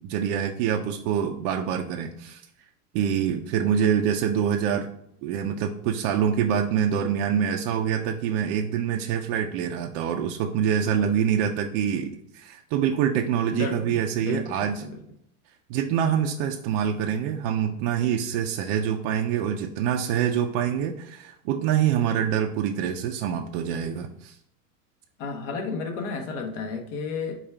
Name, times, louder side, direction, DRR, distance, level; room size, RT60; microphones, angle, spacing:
voice 1, 0.0-2.4 2.9-4.9 5.2-14.8 15.7-24.4, right 8 dB, 40° right, 2 dB, 0.4 m, -25 dB
voice 2, 13.5-15.0 25.2-27.4, left 4 dB, 55° left, 4 dB, 1.0 m, -32 dB
4.9 x 2.4 x 4.2 m, 0.72 s
hypercardioid pair, 115°, 45 cm